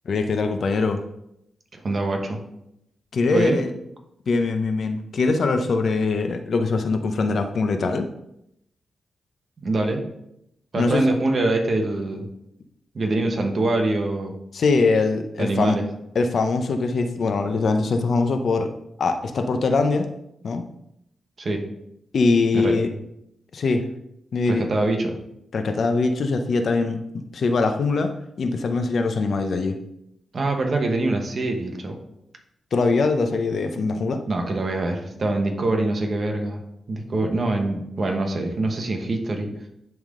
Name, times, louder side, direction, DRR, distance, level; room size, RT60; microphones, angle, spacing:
voice 1, 0.1-1.0 3.1-3.7 4.3-8.1 10.8-11.0 14.5-15.8 16.1-18.7 19.0-20.1 20.4-20.6 22.1-22.9 23.5-23.8 24.3-24.6 25.5-29.8 32.7-34.2, left 3 dB, 60° left, 7 dB, 0.7 m, -22 dB
voice 2, 1.7-2.4 3.3-3.6 9.6-10.0 10.7-12.3 12.9-14.3 15.4-15.8 21.4-21.6 22.5-22.8 24.5-25.2 30.3-32.0 34.3-36.6 36.9-39.5, right 2 dB, 45° right, 3 dB, 1.2 m, -24 dB
10.5 x 3.7 x 3.7 m, 0.80 s
wide cardioid pair, 105°, 0 cm